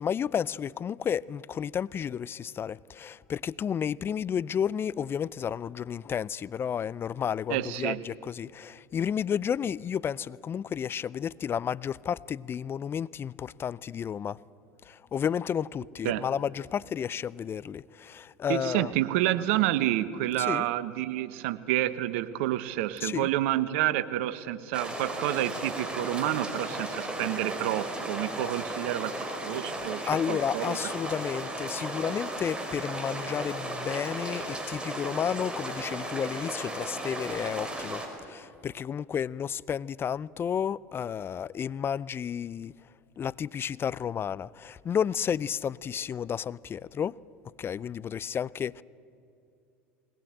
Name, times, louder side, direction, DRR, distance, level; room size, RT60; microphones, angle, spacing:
voice 1, 0.0-14.4 14.8-18.9 20.4-20.6 23.0-23.3 28.4-28.5 30.1-42.7 43.2-47.2 47.6-48.8, left 8 dB, 30° left, 0.5 m, -32 dB
voice 2, 7.5-8.0 16.0-16.2 18.5-29.1 29.4-30.8, right 14 dB, 70° right, 1.0 m, -29 dB
sound 1, 24.7-38.1, right 1 dB, 15° right, 4.9 m, -35 dB
21.0 x 19.5 x 8.9 m
hypercardioid pair, 80°, 7 cm